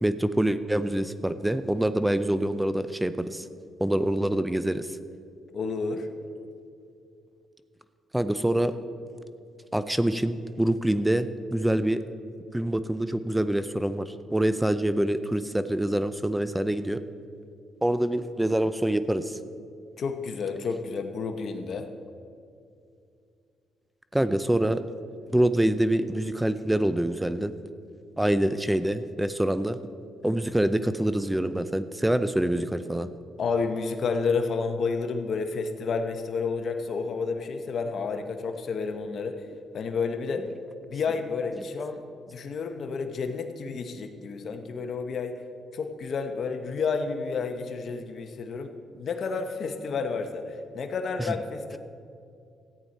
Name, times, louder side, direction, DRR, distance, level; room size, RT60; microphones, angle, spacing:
voice 1, 0.0-3.5 3.8-4.9 8.1-8.7 9.7-12.0 12.5-17.0 17.8-19.4 24.1-24.8 25.3-27.5 28.2-29.8 30.2-33.1 51.2-51.3, right 1 dB, 5° right, 12 dB, 0.4 m, -25 dB
voice 2, 5.5-6.1 20.0-21.9 33.4-39.4 39.7-40.5 40.9-42.0 42.3-45.3 45.7-48.7 48.9-50.4 50.7-51.8, left 4 dB, 55° left, 6 dB, 0.9 m, -30 dB
14.0 x 8.8 x 4.2 m, 2.4 s
cardioid pair, 90°, 0 cm